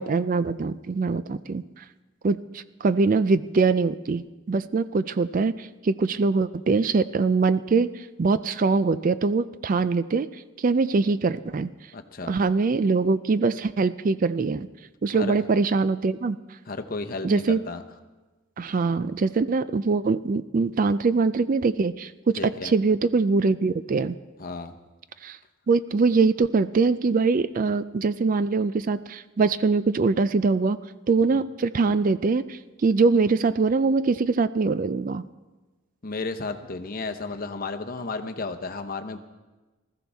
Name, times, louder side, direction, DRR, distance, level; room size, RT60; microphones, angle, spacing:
voice 1, 0.0-1.8 2.2-10.3 10.6-11.7 12.3-14.7 15.0-16.4 17.2-17.6 18.6-24.2 25.2-25.4 25.7-30.8 31.1-35.2, right 4 dB, 40° right, 14 dB, 0.3 m, -23 dB
voice 2, 11.9-12.4 15.1-15.4 16.7-17.8 22.4-22.7 24.4-24.7 31.3-31.4 36.0-39.2, left 3 dB, 40° left, 6 dB, 0.8 m, -33 dB
19.5 x 14.0 x 3.5 m, 1.2 s
head